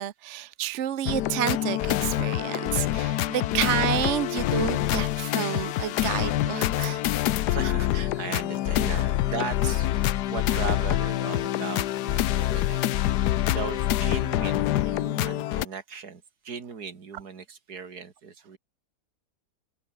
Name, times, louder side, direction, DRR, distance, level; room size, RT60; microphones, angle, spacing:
voice 1, 0.0-7.0, right 11 dB, 55° right, 0.9 m, -30 dB
sound 1, 1.1-15.7, left 13 dB, 80° left, 1.3 m, -26 dB
voice 2, 3.4-3.7 7.5-12.8 13.5-18.6, right 5 dB, 70° right, 2.6 m, -37 dB
omnidirectional pair, 1.8 m